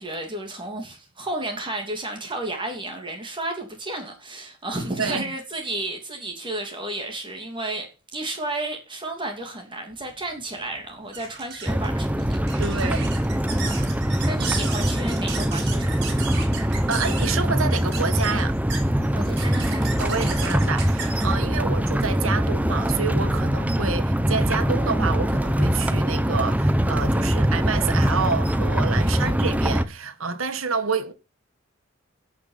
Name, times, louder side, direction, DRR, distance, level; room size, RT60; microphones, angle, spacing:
voice 1, 0.0-13.0 13.4-13.8 14.2-16.2 19.1-19.9 29.0-29.3, right 2 dB, 25° right, 3.0 m, -33 dB
voice 2, 5.0-5.3 12.6-13.2 16.5-18.6 20.0-31.1, right 5 dB, 80° right, 1.7 m, -28 dB
sound 1, 10.0-22.9, right 6 dB, 55° right, 5.9 m, -36 dB
sound 2, 11.7-29.8, equal, 5° right, 0.9 m, -23 dB
16.5 x 6.1 x 5.8 m
head